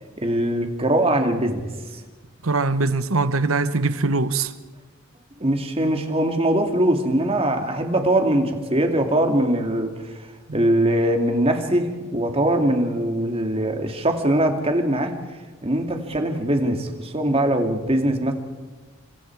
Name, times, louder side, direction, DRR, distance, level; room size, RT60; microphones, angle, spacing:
voice 1, 0.2-1.6 1.9-2.0 5.4-9.9 10.5-15.1 15.6-18.3, right 1 dB, 30° right, 2.5 m, -21 dB
voice 2, 2.4-4.5 10.5-10.7, right 3 dB, 80° right, 1.2 m, -22 dB
30.0 x 25.5 x 4.8 m
head